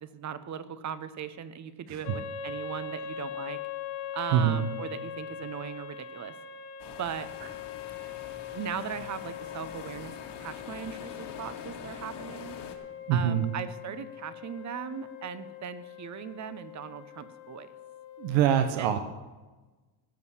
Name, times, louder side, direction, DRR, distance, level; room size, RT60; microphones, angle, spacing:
voice 1, 0.0-3.6 4.1-6.3 7.0-7.3 8.5-10.1 10.4-12.6 13.1-17.7 18.8-19.0, right 8 dB, 35° right, 13 dB, 0.9 m, -38 dB
sound 1, 2.0-18.4, left 8 dB, 85° left, 1.4 m, -41 dB
voice 2, 4.3-4.7 13.1-13.5 18.2-19.0, right 9 dB, 75° right, 8 dB, 1.1 m, -24 dB
sound 2, 6.8-12.8, left 7 dB, 55° left, 2.0 m, -45 dB
17.0 x 6.5 x 7.3 m, 1.2 s
cardioid pair, 130°, 48 cm